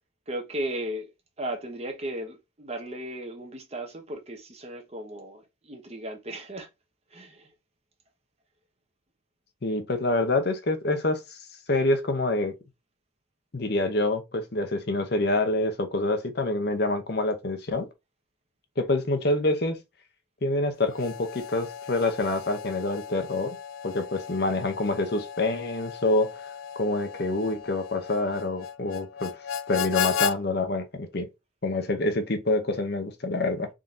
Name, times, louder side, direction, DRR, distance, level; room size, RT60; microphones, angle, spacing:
voice 1, 0.3-1.1 1.4-6.7 7.1-7.5, right 1 dB, 30° right, 0.9 m, -36 dB
voice 2, 9.6-11.4 11.7-12.5 13.5-17.9 18.8-19.8 20.4-23.6 23.8-26.3 26.8-29.3 29.7-31.3 31.6-33.7, left 2 dB, 55° left, 0.8 m, -26 dB
Harmonica, 20.8-30.4, left 8 dB, 80° left, 0.3 m, -35 dB
3.7 x 2.8 x 3.7 m
head